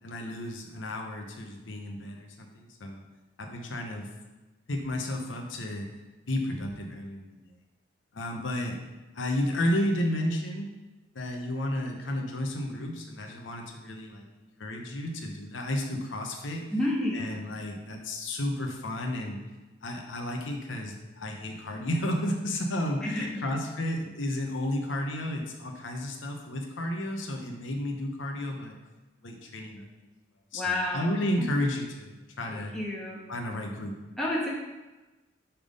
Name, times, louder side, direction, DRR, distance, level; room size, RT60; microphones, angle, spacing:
voice 1, 0.0-3.0 3.4-4.1 4.7-6.0 6.3-7.5 8.1-8.8 9.1-10.7 11.1-16.7 17.1-19.4 19.8-28.8 29.2-29.9 30.5-32.7 33.3-34.0, left 1 dB, 80° left, 2 dB, 0.8 m, -32 dB
voice 2, 16.7-17.2 23.0-23.3 30.5-31.0 31.4-31.5 32.7-33.2 34.2-34.5, left 1 dB, 5° left, -6 dB, 1.2 m, -29 dB
5.7 x 3.5 x 5.2 m, 1.1 s
head